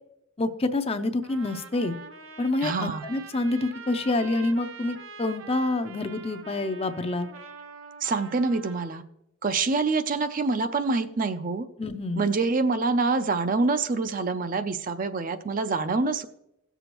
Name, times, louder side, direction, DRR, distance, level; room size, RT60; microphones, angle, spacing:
voice 1, 0.4-2.0 2.4-7.3 11.8-12.2, left 2 dB, 30° left, 9 dB, 0.5 m, -27 dB
Trumpet, 1.2-9.0, right 5 dB, 80° right, 0.8 m, -44 dB
voice 2, 2.6-3.0 8.0-9.0 9.4-11.7 12.2-16.3, right 3 dB, 40° right, 10 dB, 0.4 m, -26 dB
17.0 x 6.9 x 3.0 m, 0.84 s
head